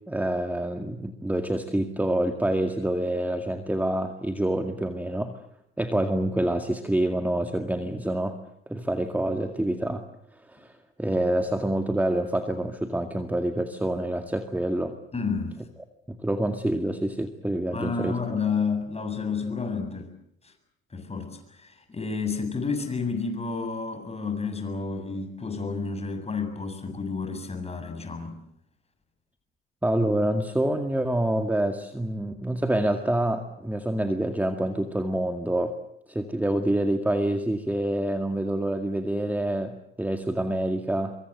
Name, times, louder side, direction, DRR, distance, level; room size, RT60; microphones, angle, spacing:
voice 1, 0.1-5.3 5.8-8.4 8.7-10.0 10.5-10.7 11.0-14.9 16.1-18.2 29.8-35.7 36.1-41.2, right 1 dB, 5° right, 6 dB, 2.0 m, -27 dB
voice 2, 15.1-15.6 17.7-20.1 20.4-20.5 20.9-28.4, left 4 dB, 20° left, 6 dB, 7.6 m, -30 dB
25.0 x 24.0 x 8.0 m, 0.75 s
hypercardioid pair, 75°, 32 cm